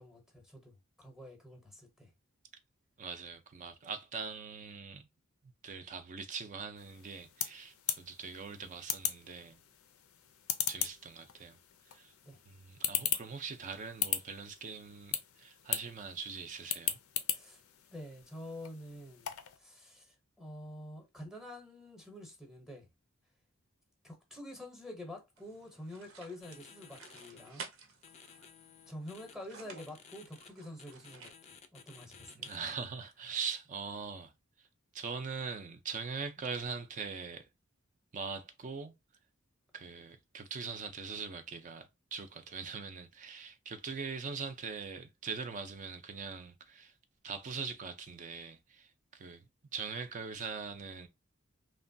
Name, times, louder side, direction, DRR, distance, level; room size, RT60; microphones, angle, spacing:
voice 1, 0.0-2.1 12.2-12.4 17.3-17.6 17.9-19.3 19.6-22.9 24.0-27.7 28.9-31.3 31.7-32.5, left 1 dB, ahead, 0.7 m, -48 dB
voice 2, 3.0-5.1 5.6-9.6 10.7-11.6 11.9-12.1 12.5-17.0 32.3-34.3 34.6-34.7 34.9-37.5 38.1-38.9 39.7-46.9 47.2-51.1, right 5 dB, 40° right, 0.4 m, -42 dB
sound 1, 6.8-19.6, left 10 dB, 90° left, 0.4 m, -39 dB
sound 2, 25.4-31.3, right 5 dB, 75° right, 0.7 m, -53 dB
sound 3, 26.4-27.5 28.0-29.3 29.8-30.5 30.8-32.7, left 6 dB, 30° left, 0.4 m, -55 dB
3.0 x 2.2 x 2.5 m
head